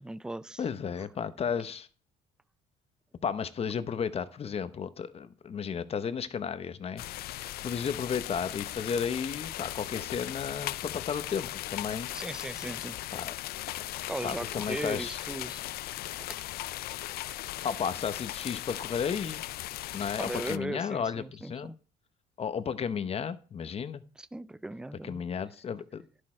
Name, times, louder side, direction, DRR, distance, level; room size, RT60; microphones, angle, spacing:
voice 1, 0.0-0.6 12.1-13.0 14.1-15.6 16.2-16.4 20.2-21.8 24.2-25.2, right 2 dB, 5° right, 0.3 m, -38 dB
voice 2, 0.6-1.9 3.2-7.0 7.3-12.1 13.1-13.3 14.2-15.2 17.6-19.5 19.9-21.7 22.4-24.0 25.0-26.0, left 7 dB, 35° left, 0.8 m, -33 dB
sound 1, 7.0-20.6, left 15 dB, 65° left, 0.4 m, -38 dB
11.0 x 6.4 x 4.4 m
cardioid pair, 110°, 17 cm